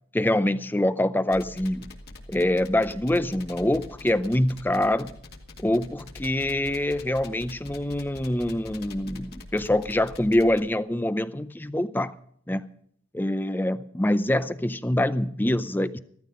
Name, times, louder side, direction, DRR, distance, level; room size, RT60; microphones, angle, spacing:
voice 1, 0.1-1.9 2.3-5.2 5.6-12.1 12.5-12.6 13.1-16.0, left 1 dB, 10° left, 0.5 m, -25 dB
sound 1, 1.3-10.6, left 2 dB, 50° left, 2.0 m, -44 dB
16.0 x 13.0 x 5.0 m
head